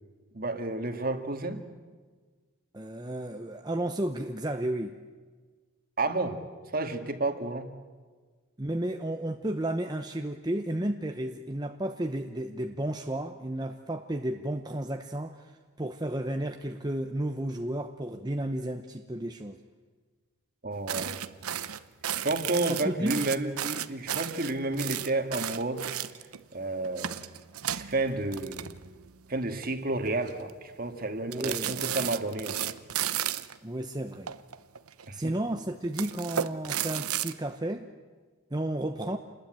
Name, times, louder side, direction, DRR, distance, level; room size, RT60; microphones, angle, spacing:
voice 1, 0.3-1.6 6.0-6.4 6.7-7.7 20.6-21.2 22.2-25.9 26.5-27.2 27.7-28.7 29.3-32.7 35.1-35.2, right 2 dB, 40° right, 7 dB, 2.0 m, -31 dB
voice 2, 2.7-5.0 8.6-15.5 15.8-19.6 22.6-23.2 31.3-31.8 33.6-34.3 35.1-37.9 38.5-39.2, right 1 dB, 20° right, 5 dB, 0.9 m, -32 dB
sound 1, 20.9-26.4 26.8-29.1 29.4-29.7 30.1-30.5 31.3-33.6 34.3-35.1 35.8-37.3, right 10 dB, 85° right, 0.9 m, -33 dB
28.5 x 20.5 x 8.9 m, 1.5 s
head